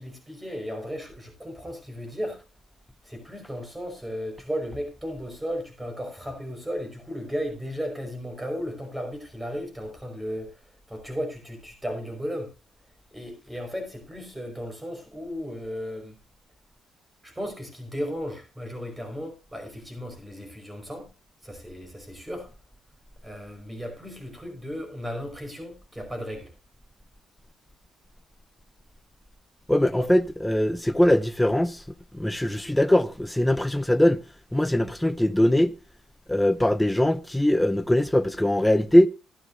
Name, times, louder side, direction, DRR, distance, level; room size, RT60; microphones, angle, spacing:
voice 1, 0.0-2.4 3.0-12.5 13.1-16.2 17.2-21.1 21.4-22.5 23.2-26.5 29.9-30.1, equal, 10° right, 5.3 m, -35 dB
voice 2, 29.7-31.8 32.1-34.2 34.5-35.7 36.3-39.1, left 1 dB, 5° left, 0.6 m, -21 dB
15.0 x 11.5 x 2.7 m
cardioid pair, 120°, 0 cm